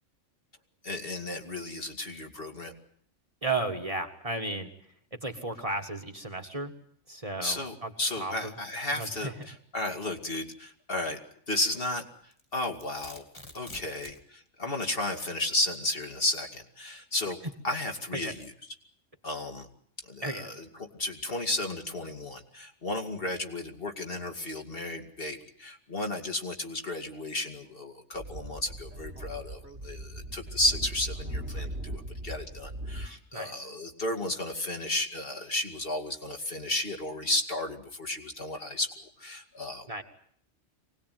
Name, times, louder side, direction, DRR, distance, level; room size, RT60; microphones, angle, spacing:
voice 1, 0.8-2.7 7.4-11.2 11.5-12.0 12.5-13.2 13.5-17.4 17.6-18.5 19.2-19.7 20.0-20.7 20.9-39.9, left 1 dB, 50° left, 4 dB, 2.5 m, -33 dB
voice 2, 3.4-4.7 5.2-6.7 7.1-7.9 8.2-8.5 8.9-9.3 18.1-18.3 20.2-20.5 33.3-33.6 39.9-40.0, right 2 dB, 30° right, 6 dB, 1.9 m, -34 dB
Domestic sounds home sounds, 12.3-14.2, left 1 dB, 25° left, 2.4 m, -47 dB
Speech / Wind, 28.1-33.1, right 1 dB, 65° right, 2.9 m, -39 dB
24.5 x 19.0 x 9.3 m, 0.62 s
omnidirectional pair, 1.2 m